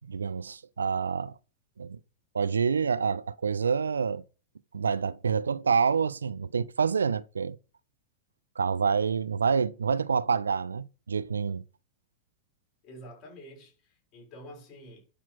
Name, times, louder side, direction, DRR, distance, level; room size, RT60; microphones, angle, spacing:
voice 1, 0.1-1.3 1.8-2.0 2.3-4.2 4.7-7.6 8.6-11.6, right 6 dB, 75° right, 0.4 m, -27 dB
voice 2, 12.8-15.0, equal, 40° left, 6.1 m, -48 dB
11.5 x 5.9 x 6.0 m
figure-of-eight pair, 90°, 0 cm